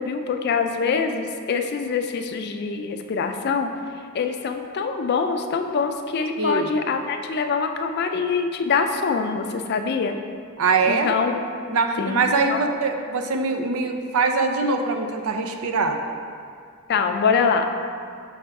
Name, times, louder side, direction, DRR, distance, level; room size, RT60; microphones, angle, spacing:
voice 1, 0.0-3.7 4.1-10.2 10.8-11.4 12.0-12.7 16.9-17.7, left 5 dB, 50° left, 6 dB, 0.4 m, -24 dB
voice 2, 6.4-6.7 10.6-11.1 11.7-16.0, right 4 dB, 85° right, 5 dB, 0.5 m, -23 dB
6.3 x 3.3 x 4.6 m, 2.2 s
head